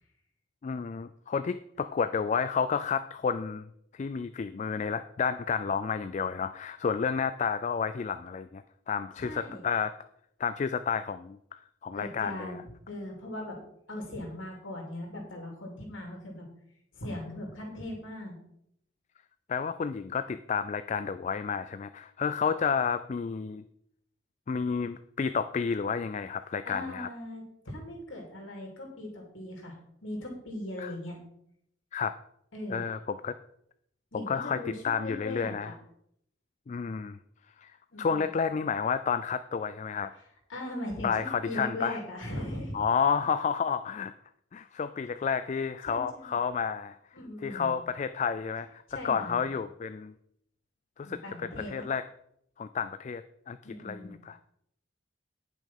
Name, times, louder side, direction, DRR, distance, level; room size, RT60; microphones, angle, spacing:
voice 1, 0.6-9.9 10.4-12.6 19.5-23.6 24.5-27.1 30.8-30.9 31.9-32.1 32.7-33.3 34.1-35.7 36.7-37.2 37.6-40.1 41.0-42.0 42.7-44.1 44.5-47.0 47.4-50.1 51.0-52.0 52.6-54.4, left 6 dB, 35° left, 12 dB, 0.3 m, -31 dB
voice 2, 9.2-9.7 11.9-13.6 13.9-16.5 16.9-18.3 26.6-31.2 32.5-32.8 34.1-35.8 37.9-38.3 40.2-42.8 45.9-46.3 47.1-47.7 48.9-49.4 51.0-51.9 53.6-54.1, left 1 dB, 80° left, 0 dB, 2.8 m, -39 dB
10.5 x 6.0 x 5.5 m, 0.73 s
head